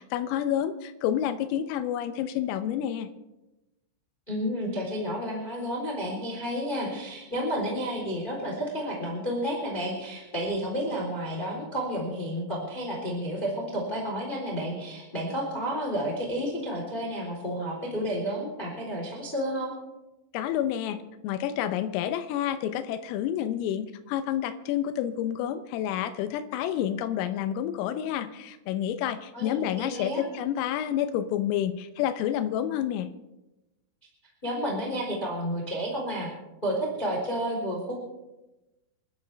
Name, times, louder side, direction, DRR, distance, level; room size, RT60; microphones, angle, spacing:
voice 1, 0.0-3.1 20.3-33.1, left 10 dB, 90° left, 9 dB, 3.5 m, -29 dB
voice 2, 4.3-19.7 29.3-30.2 34.4-36.3 36.6-37.9, equal, 10° left, -2 dB, 3.1 m, -31 dB
29.0 x 12.0 x 3.5 m, 1.0 s
omnidirectional pair, 5.8 m